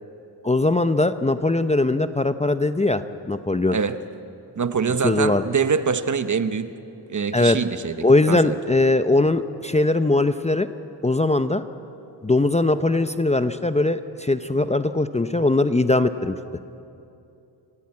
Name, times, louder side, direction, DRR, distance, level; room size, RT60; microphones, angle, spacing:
voice 1, 0.4-3.0 3.3-3.8 5.0-5.4 7.3-7.6 8.0-10.7 11.0-11.6 12.2-16.4, left 2 dB, 15° left, 10 dB, 0.6 m, -20 dB
voice 2, 3.7-4.0 4.6-6.7 7.1-8.6, right 6 dB, 40° right, 11 dB, 1.0 m, -24 dB
28.0 x 15.0 x 8.7 m, 2.7 s
wide cardioid pair, 110°, 43 cm